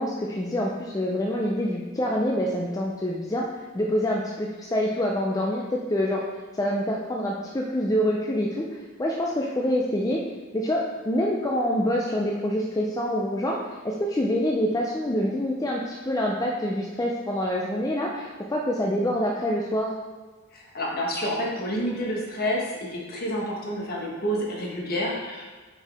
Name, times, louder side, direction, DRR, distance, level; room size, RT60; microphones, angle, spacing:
voice 1, 0.0-3.5 3.7-6.2 6.5-10.2 10.5-19.9, equal, 15° left, -2 dB, 0.5 m, -26 dB
voice 2, 20.5-25.5, equal, 45° left, -2 dB, 1.4 m, -29 dB
7.2 x 4.6 x 3.4 m, 1.3 s
head